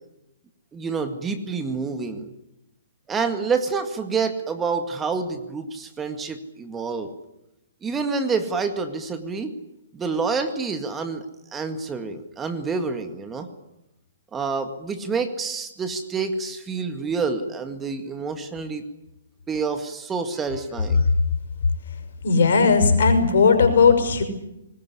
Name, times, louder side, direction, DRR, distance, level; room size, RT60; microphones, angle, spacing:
voice 1, 0.7-2.3 3.1-7.1 7.8-9.5 9.9-11.2 11.5-13.5 14.3-18.8 19.5-21.0, right 4 dB, 15° right, 8 dB, 2.0 m, -28 dB
voice 2, 22.2-24.2, left 5 dB, 65° left, 7 dB, 5.9 m, -17 dB
22.0 x 20.0 x 9.9 m, 0.89 s
hypercardioid pair, 130°, 0 cm